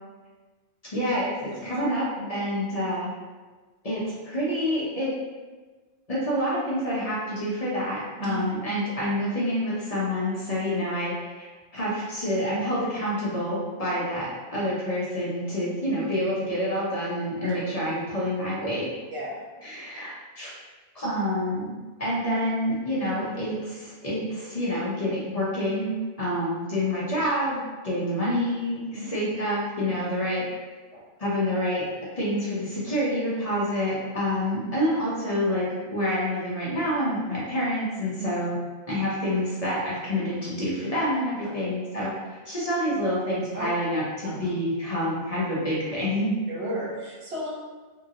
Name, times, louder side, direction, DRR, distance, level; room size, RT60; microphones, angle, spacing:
voice 1, 0.9-3.1 3.8-5.1 6.1-18.9 19.6-20.5 20.9-30.4 31.2-31.9 32.2-38.6 38.9-46.3, equal, 40° left, -7 dB, 0.7 m, -27 dB
voice 2, 19.1-19.4 28.9-29.1 38.2-38.3 43.5-43.7 44.2-44.3 46.5-47.5, right 1 dB, 75° right, -5 dB, 1.0 m, -34 dB
2.8 x 2.6 x 2.7 m, 1.3 s
omnidirectional pair, 1.1 m